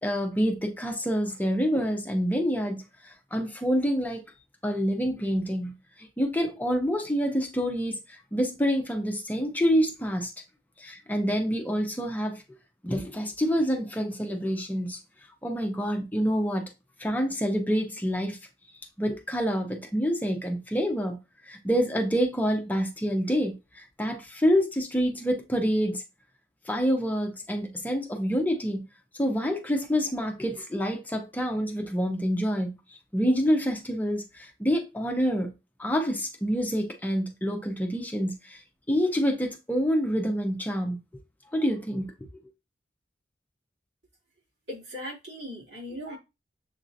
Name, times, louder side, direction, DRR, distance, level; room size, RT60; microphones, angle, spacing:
voice 1, 0.0-4.2 4.6-5.7 6.0-10.3 10.8-12.4 12.8-15.0 15.4-16.7 17.0-18.4 19.0-21.2 21.4-26.0 26.6-28.9 29.2-32.7 33.1-35.5 35.8-38.6 38.9-41.0 41.5-42.1, equal, 10° left, 0.7 m, -27 dB
voice 2, 44.7-46.2, equal, 85° right, 2.8 m, -38 dB
7.2 x 2.7 x 2.6 m
head